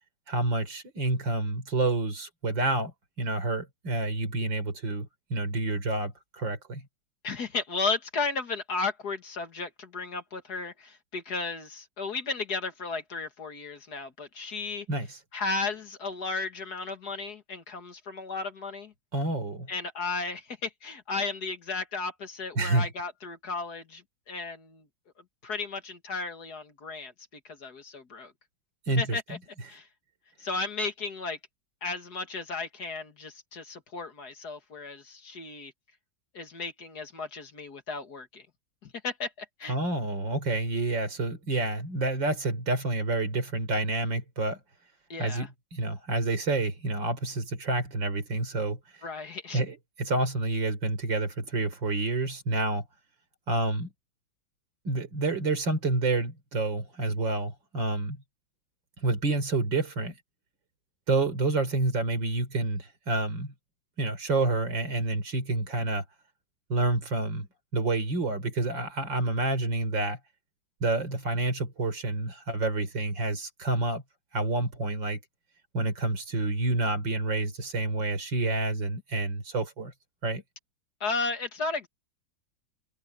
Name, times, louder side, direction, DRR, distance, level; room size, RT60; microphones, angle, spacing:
voice 1, 0.3-6.9 14.9-15.2 19.1-19.7 22.6-22.9 28.9-29.4 39.7-44.6 45.2-48.8 49.5-52.8 53.5-53.9 54.8-58.2 59.0-60.2 61.1-63.5 64.0-66.0 66.7-67.5 67.7-70.2 70.8-74.0 74.3-75.2 75.7-79.9 80.2-80.4, right 2 dB, 75° right, 4.7 m, -28 dB
voice 2, 7.2-14.9 15.3-18.9 19.7-24.8 25.4-27.1 27.4-28.3 29.0-29.4 29.7-29.9 30.4-31.4 31.8-35.7 36.3-38.5 38.8-39.8 45.1-45.5 49.0-49.6 81.0-81.9, left 4 dB, 55° left, 2.4 m, -34 dB
omnidirectional pair, 2.0 m